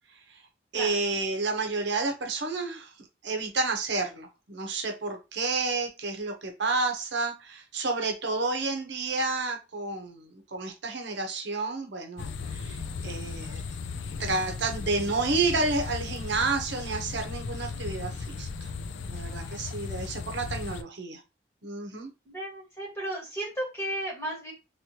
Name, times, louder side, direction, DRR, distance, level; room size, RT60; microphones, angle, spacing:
voice 1, 0.7-2.9 3.2-13.6 14.2-18.7 19.0-21.2 21.6-22.1, right 3 dB, 70° right, 4 dB, 0.8 m, -30 dB
sound 1, 12.2-20.8, left 4 dB, 85° left, 0.4 m, -36 dB
voice 2, 22.2-24.5, right 1 dB, 15° left, -3 dB, 1.4 m, -34 dB
3.1 x 3.0 x 2.8 m, 0.27 s
head